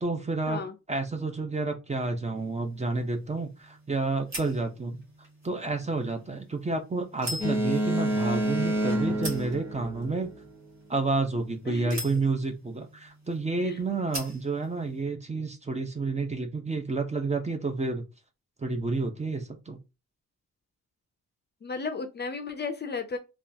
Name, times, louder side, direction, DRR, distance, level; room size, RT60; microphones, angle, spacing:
voice 1, 0.0-0.6 0.9-5.0 5.4-10.3 10.9-18.0 18.6-19.8, right 3 dB, 25° right, 0.5 m, -30 dB
sound 1, 2.3-15.0, right 1 dB, 45° right, 1.5 m, -44 dB
Boat Water vehicle, 7.4-10.5, equal, 5° right, 1.2 m, -28 dB
voice 2, 11.7-12.0 13.6-13.8 21.6-23.2, left 4 dB, 35° left, 0.4 m, -34 dB
3.5 x 2.3 x 2.6 m
wide cardioid pair, 145°, 30 cm